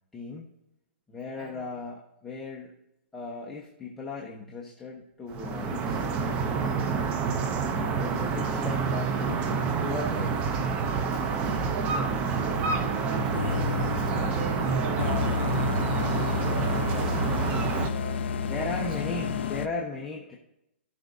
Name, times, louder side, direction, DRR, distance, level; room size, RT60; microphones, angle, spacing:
voice 1, 0.1-0.5 1.1-2.7 3.1-7.2 7.7-10.4 18.4-20.4, left 3 dB, 5° left, -3 dB, 0.9 m, -37 dB
voice 2, 1.3-1.7 7.7-8.2 10.7-15.3 15.7-19.5, right 3 dB, 40° right, -1 dB, 4.1 m, -41 dB
sound 1, 5.3-17.9, right 5 dB, 20° right, 0.6 m, -28 dB
sound 2, 13.3-19.7, left 6 dB, 60° left, 0.7 m, -31 dB
17.0 x 6.0 x 2.6 m, 0.84 s
hypercardioid pair, 170°, 7 cm